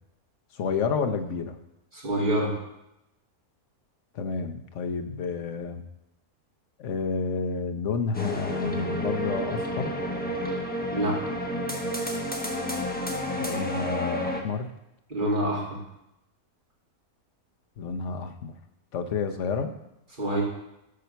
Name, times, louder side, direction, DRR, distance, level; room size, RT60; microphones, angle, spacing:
voice 1, 0.5-1.6 4.1-5.8 6.8-9.9 13.4-14.7 17.8-18.5 18.9-19.7, left 5 dB, 60° left, 6 dB, 1.1 m, -30 dB
voice 2, 1.9-2.5 10.9-11.2 15.1-15.8 20.2-20.4, right 1 dB, 35° right, -5 dB, 2.8 m, -26 dB
sound 1, 8.1-14.4, equal, 5° left, 1.0 m, -30 dB
11.5 x 4.5 x 6.9 m, 0.89 s
omnidirectional pair, 1.5 m